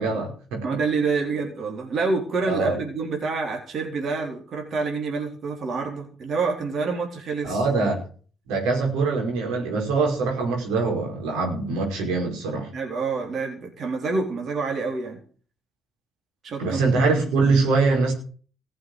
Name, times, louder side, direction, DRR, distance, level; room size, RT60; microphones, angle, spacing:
voice 1, 0.0-0.6 2.4-2.8 7.4-8.0 8.5-12.7 16.6-18.1, right 3 dB, 85° right, 1 dB, 5.3 m, -23 dB
voice 2, 0.6-7.9 12.7-15.2 16.4-17.1 17.4-17.6, right 4 dB, 55° right, 1 dB, 4.0 m, -27 dB
16.0 x 7.6 x 7.9 m, 0.42 s
supercardioid pair, 75°, 0 cm